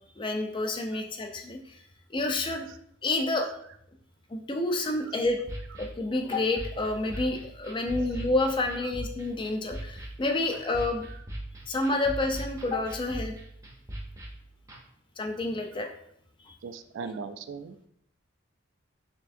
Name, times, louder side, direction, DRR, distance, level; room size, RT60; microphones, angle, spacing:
voice 1, 0.2-1.8 2.1-2.7 3.0-3.5 4.3-5.4 5.8-11.1 11.7-13.3 15.2-15.9 16.5-16.6, left 2 dB, 25° left, 3 dB, 0.4 m, -29 dB
sound 1, 5.2-14.8, right 1 dB, 15° right, 0.6 m, -40 dB
voice 2, 16.6-17.8, right 5 dB, 65° right, 10 dB, 0.3 m, -40 dB
4.4 x 3.3 x 2.6 m, 0.70 s
head